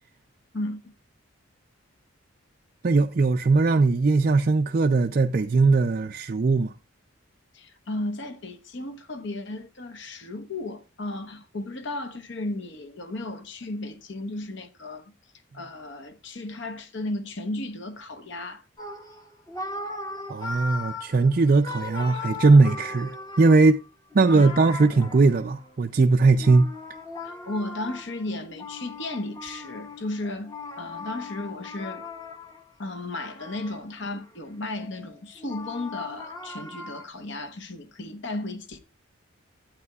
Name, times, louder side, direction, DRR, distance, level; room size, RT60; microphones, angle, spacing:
voice 1, 0.5-0.9 7.5-15.1 15.5-18.6 24.3-24.5 27.2-32.1 32.8-38.8, left 2 dB, 55° left, 1.0 m, -34 dB
voice 2, 2.8-6.7 20.3-23.8 24.1-26.7, right 3 dB, 40° right, 0.4 m, -19 dB
sound 1, 18.8-25.8 26.4-32.7 33.2-34.3 34.7-37.1, left 3 dB, 15° left, 0.9 m, -38 dB
12.0 x 8.8 x 2.4 m
head